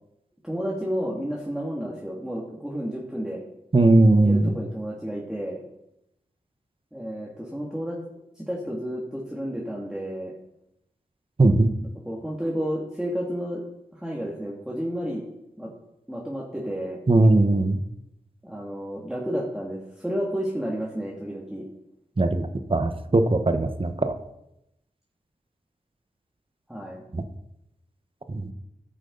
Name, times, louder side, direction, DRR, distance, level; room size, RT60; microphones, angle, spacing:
voice 1, 0.4-3.4 4.2-5.6 6.9-8.0 8.3-10.3 11.8-13.6 13.9-15.2 15.6-15.7 16.1-17.0 18.4-21.7 26.7-27.0, equal, 5° right, -4 dB, 2.3 m, -31 dB
voice 2, 3.7-4.6 11.4-11.7 17.1-17.8 22.2-24.1 28.3-28.5, right 2 dB, 35° right, 8 dB, 1.2 m, -19 dB
14.0 x 6.4 x 4.0 m, 0.84 s
cardioid pair, 45°, 15 cm